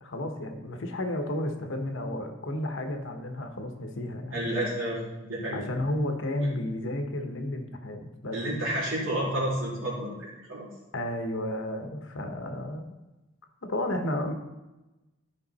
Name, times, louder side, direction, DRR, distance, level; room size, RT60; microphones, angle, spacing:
voice 1, 0.0-4.5 5.5-8.4 10.9-12.9 13.6-14.3, left 1 dB, 70° left, 5 dB, 1.1 m, -32 dB
voice 2, 4.3-5.6 8.3-10.6, right 1 dB, 85° right, -7 dB, 3.0 m, -30 dB
12.5 x 5.2 x 4.1 m, 1.0 s
head